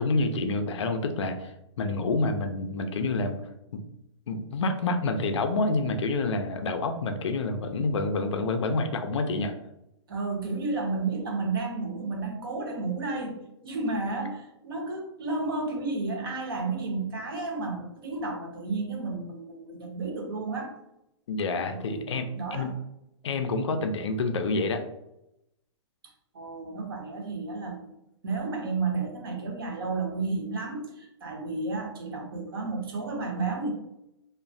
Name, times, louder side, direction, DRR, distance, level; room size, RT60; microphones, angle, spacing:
voice 1, 0.0-3.4 3.7-3.8 4.3-9.5 21.3-22.7 23.2-24.9, left 3 dB, 65° left, 6 dB, 0.4 m, -28 dB
voice 2, 10.1-20.7 21.7-22.7 26.3-27.9 28.2-33.7, right 3 dB, 45° right, 2 dB, 0.7 m, -32 dB
3.0 x 2.1 x 2.6 m, 0.85 s
hypercardioid pair, 180°, 16 cm